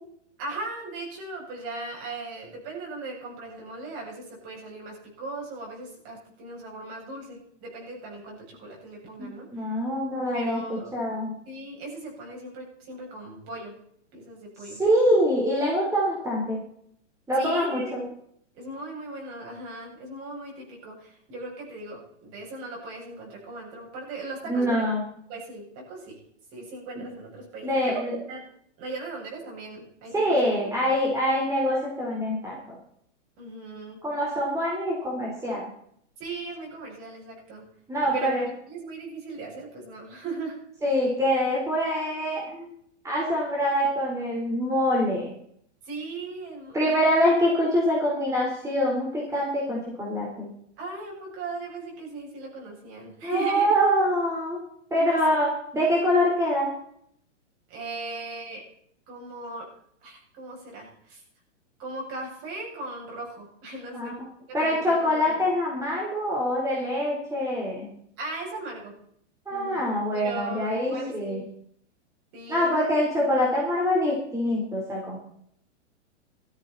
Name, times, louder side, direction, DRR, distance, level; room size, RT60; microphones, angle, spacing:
voice 1, 0.4-9.7 10.3-11.0 11.5-13.7 14.1-14.8 17.3-17.9 18.5-24.8 25.3-26.2 26.5-28.5 28.8-30.6 33.4-34.0 36.2-37.6 38.0-40.6 45.8-47.1 50.8-53.7 54.9-55.2 57.7-58.6 59.1-59.7 60.0-61.2 61.8-64.1 64.5-65.5 68.2-68.9 69.5-69.8 70.1-71.5 72.3-72.7, right 3 dB, 40° right, -1 dB, 7.9 m, -38 dB
voice 2, 9.2-11.3 14.8-16.6 17.3-18.0 24.5-25.0 27.6-28.1 30.1-32.8 34.0-35.6 37.9-38.5 40.8-42.7 43.0-45.3 46.7-50.5 53.2-54.6 54.9-56.7 63.9-64.1 64.5-67.9 69.5-71.4 72.5-75.2, equal, 10° right, -3 dB, 4.1 m, -25 dB
16.0 x 14.0 x 4.3 m, 0.66 s
hypercardioid pair, 135°, 37 cm